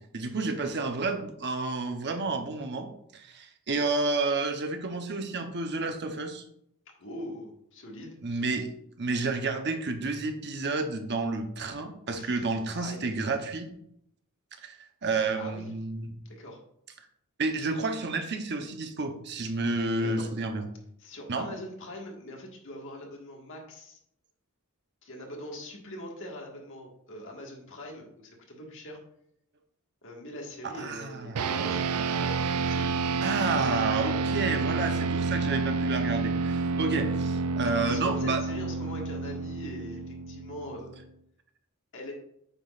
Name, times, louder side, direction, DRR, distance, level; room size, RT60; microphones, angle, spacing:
voice 1, 0.1-6.4 8.2-8.7 9.0-13.7 14.6-14.8 15.0-16.2 17.4-20.6 21.3-21.5 30.6-31.6 33.2-38.4, right 3 dB, 50° right, 6 dB, 0.9 m, -30 dB
voice 2, 7.0-8.2 12.1-12.5 12.8-13.1 15.1-15.7 16.2-16.6 19.7-20.3 21.0-24.0 25.0-29.0 30.0-33.3 37.7-41.0 41.9-42.1, left 1 dB, 60° left, 0 dB, 1.8 m, -42 dB
sound 1, 31.4-41.0, right 4 dB, 85° right, 0.5 m, -29 dB
9.0 x 6.1 x 2.5 m, 0.72 s
head